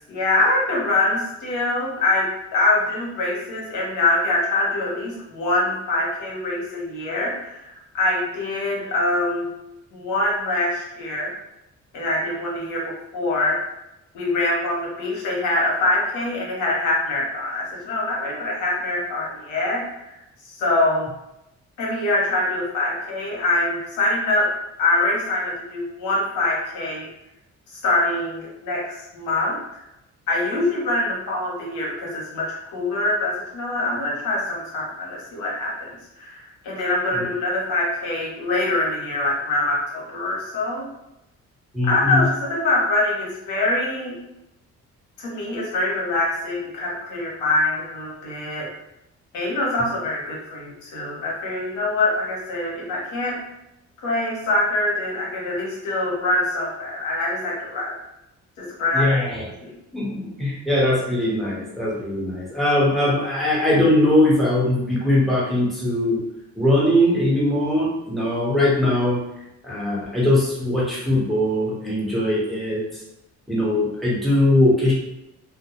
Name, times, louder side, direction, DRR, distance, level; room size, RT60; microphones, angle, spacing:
voice 1, 0.1-9.5 9.9-11.3 11.9-13.6 14.1-21.1 21.8-24.5 24.8-27.1 27.7-29.8 30.3-40.9 41.8-44.2 45.2-48.7 49.3-53.4 54.0-57.9 58.6-59.2 59.6-59.7, left 2 dB, 90° left, -3 dB, 0.9 m, -24 dB
voice 2, 41.7-42.3 58.9-59.5 59.9-66.2 66.6-69.2 69.6-73.0 73.5-74.9, left 1 dB, ahead, -7 dB, 1.0 m, -20 dB
2.2 x 2.1 x 2.9 m, 0.87 s
cardioid pair, 90°, 30 cm